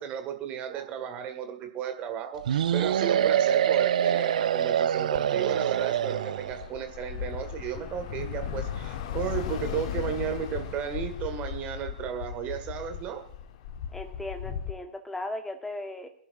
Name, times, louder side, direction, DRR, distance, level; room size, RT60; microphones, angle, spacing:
voice 1, 0.0-13.2, right 8 dB, 30° right, 6 dB, 1.9 m, -34 dB
sound 1, 2.5-6.6, right 9 dB, 55° right, 0.6 m, -25 dB
Bus / Traffic noise roadway noise, 5.9-14.7, left 9 dB, 45° left, 1.1 m, -36 dB
voice 2, 13.9-16.1, left 1 dB, 5° left, 6 dB, 1.4 m, -37 dB
23.0 x 11.0 x 2.6 m, 0.66 s
figure-of-eight pair, 105°, 5 cm